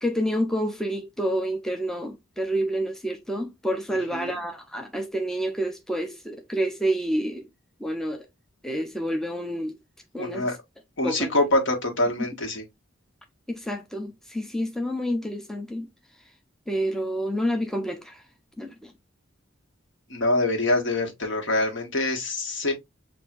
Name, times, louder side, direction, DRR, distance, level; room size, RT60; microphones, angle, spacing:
voice 1, 0.0-7.5 7.8-8.3 8.6-9.8 10.1-10.5 11.0-11.3 13.5-15.9 16.7-18.2 18.6-18.9, equal, ahead, 0.4 m, -28 dB
voice 2, 10.2-10.6 11.0-12.6 20.1-22.7, left 2 dB, 65° left, 1.4 m, -25 dB
6.1 x 2.6 x 2.4 m
head